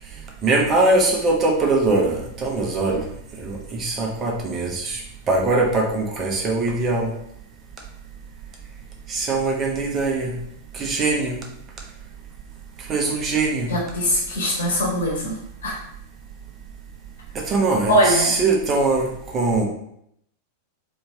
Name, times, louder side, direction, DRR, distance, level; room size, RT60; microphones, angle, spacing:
voice 1, 0.4-3.0 3.4-5.0 5.3-7.1 9.1-10.3 10.7-11.4 12.9-13.7 17.5-19.1 19.3-19.6, right 3 dB, 30° right, -1 dB, 1.0 m, -21 dB
voice 2, 13.7-15.3 15.6-15.7 17.9-18.3, equal, 65° left, -2 dB, 1.4 m, -21 dB
4.3 x 2.8 x 3.4 m, 0.73 s
figure-of-eight pair, 90°, 0 cm